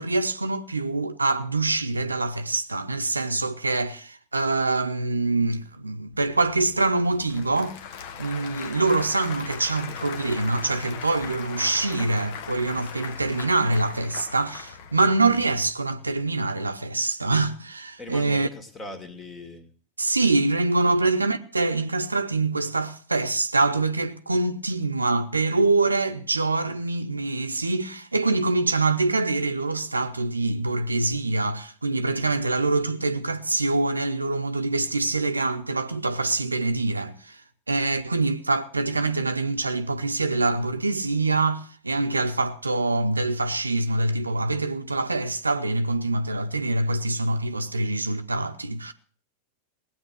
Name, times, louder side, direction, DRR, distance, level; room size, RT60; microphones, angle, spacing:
voice 1, 0.0-7.8 8.2-18.5 20.0-37.4 37.7-48.9, right 2 dB, 80° right, 0.8 m, -25 dB
Applause / Crowd, 6.1-15.7, left 7 dB, 50° left, 1.1 m, -39 dB
voice 2, 18.0-19.7 20.8-21.0, left 1 dB, 20° left, 2.1 m, -40 dB
18.0 x 8.8 x 6.2 m
figure-of-eight pair, 90°, 0 cm